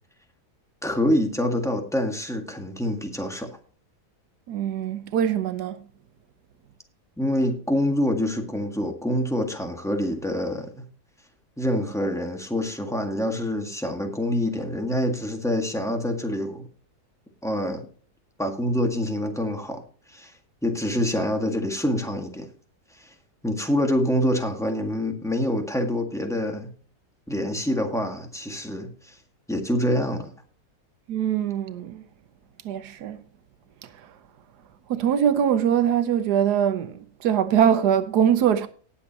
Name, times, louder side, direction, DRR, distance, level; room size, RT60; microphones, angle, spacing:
voice 1, 0.8-3.6 7.2-10.9 11.6-16.7 17.4-17.9 18.4-19.8 20.1-20.3 20.6-22.5 23.0-23.1 23.4-26.7 27.3-29.2 29.5-30.3, left 1 dB, ahead, 1.6 m, -26 dB
voice 2, 4.5-5.8 31.1-32.0 32.6-33.2 33.8-34.1 34.9-38.7, right 9 dB, 85° right, 1.4 m, -23 dB
19.0 x 7.1 x 2.9 m
omnidirectional pair, 1.7 m